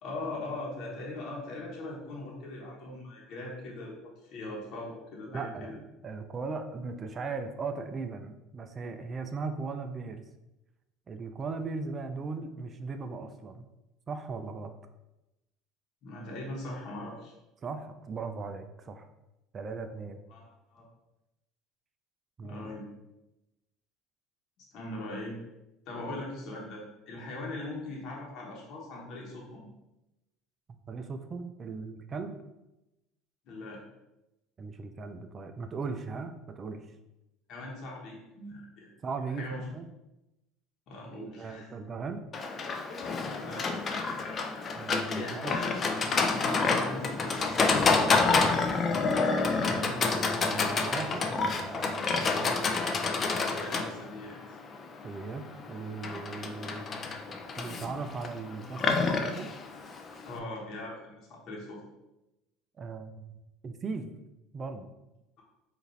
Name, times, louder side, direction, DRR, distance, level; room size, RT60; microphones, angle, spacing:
voice 1, 0.0-3.9 4.2-5.8 16.0-17.3 20.3-20.8 22.4-22.9 24.7-25.3 25.9-29.7 33.5-33.8 37.5-38.9 39.3-39.6 40.9-41.7 43.4-43.7 45.1-48.4 53.5-54.4 60.2-61.8, left 2 dB, 55° left, -2 dB, 1.0 m, -40 dB
voice 2, 5.3-10.2 11.1-13.7 14.1-14.7 17.6-19.1 19.5-20.2 22.4-22.7 30.7-32.4 34.6-36.9 39.0-39.4 39.7-39.9 41.1-42.2 44.8-45.5 49.3-49.4 49.7-52.6 55.0-56.9 57.6-59.5 62.8-63.2 63.6-64.1 64.5-64.9, right 4 dB, 30° right, 7 dB, 0.4 m, -38 dB
Livestock farm animals working animals, 42.3-60.4, left 4 dB, 35° left, 0.4 m, -29 dB
5.1 x 2.5 x 3.2 m, 0.95 s
supercardioid pair, 115°, 0 cm